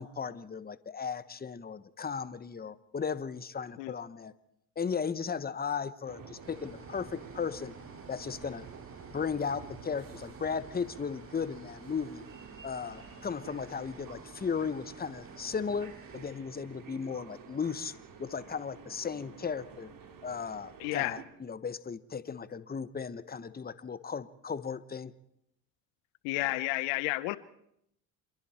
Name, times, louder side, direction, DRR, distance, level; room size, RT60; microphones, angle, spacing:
voice 1, 0.0-4.3 4.8-7.7 8.1-8.7 9.1-12.2 12.6-17.9 18.2-19.9 20.2-25.1, left 6 dB, 20° left, 15 dB, 1.2 m, -36 dB
sound 1, 6.0-21.3, right 6 dB, 45° right, 3.7 m, -50 dB
sound 2, 6.4-16.3, right 3 dB, 30° right, 6.0 m, -52 dB
voice 2, 20.8-21.2 26.2-27.4, left 20 dB, 70° left, 17 dB, 1.1 m, -31 dB
27.5 x 22.5 x 4.4 m, 0.75 s
hypercardioid pair, 75°, 45 cm